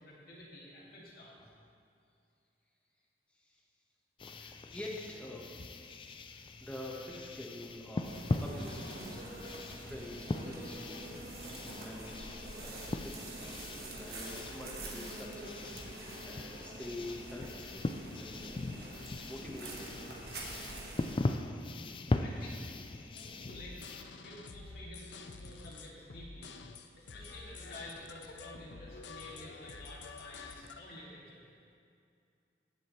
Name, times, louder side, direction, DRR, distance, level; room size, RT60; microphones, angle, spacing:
voice 1, 0.0-1.4 21.8-22.6 23.0-23.8 24.2-26.5 27.0-31.5, left 1 dB, 55° left, -6 dB, 2.2 m, -50 dB
sound 1, 4.2-24.0, left 2 dB, 30° left, 0.3 m, -40 dB
voice 2, 4.3-6.0 6.3-9.6 9.8-11.3 11.8-12.3 12.6-13.5 13.9-20.2, left 1 dB, 5° left, -3 dB, 1.1 m, -47 dB
sound 2, 8.0-21.1, right 2 dB, 60° right, 1.3 m, -46 dB
sound 3, 23.2-30.8, left 4 dB, 80° left, 0.5 m, -49 dB
15.5 x 7.1 x 3.1 m, 2.4 s
head